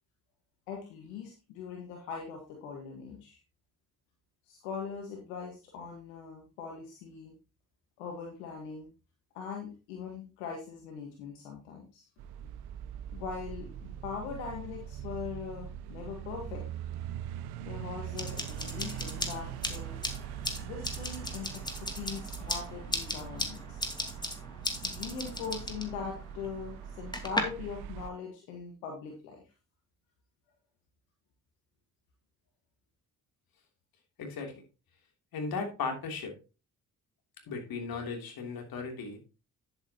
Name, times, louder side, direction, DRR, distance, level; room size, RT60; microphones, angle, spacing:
voice 1, 0.7-3.4 4.5-7.3 8.0-8.9 9.3-12.1 13.1-16.7 17.6-20.0 20.6-21.6 21.9-23.8 24.8-29.4, left 6 dB, 90° left, 1 dB, 1.7 m, -41 dB
sound 1, 12.2-28.1, right 10 dB, 80° right, 0.8 m, -42 dB
sound 2, 18.2-27.4, left 1 dB, 10° left, 2.4 m, -37 dB
voice 2, 34.2-34.6 35.3-36.3 37.5-39.2, left 4 dB, 65° left, 3 dB, 3.1 m, -36 dB
10.0 x 8.7 x 2.9 m, 0.31 s
hypercardioid pair, 50°, 38 cm